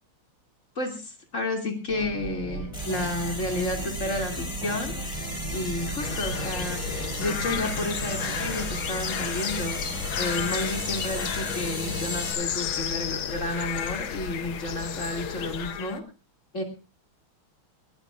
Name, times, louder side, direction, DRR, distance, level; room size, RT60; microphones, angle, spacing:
voice 1, 0.8-5.0 5.5-6.8 7.2-9.8 10.2-16.0 16.5-16.6, left 1 dB, 35° left, 3 dB, 3.0 m, -31 dB
sound 1, 1.9-8.8, right 2 dB, 85° right, 5.6 m, -37 dB
sound 2, 2.7-12.3, equal, 10° left, 4.9 m, -35 dB
sound 3, 6.0-16.0, left 8 dB, 70° left, 1.8 m, -32 dB
19.0 x 17.5 x 2.5 m, 0.31 s
omnidirectional pair, 2.3 m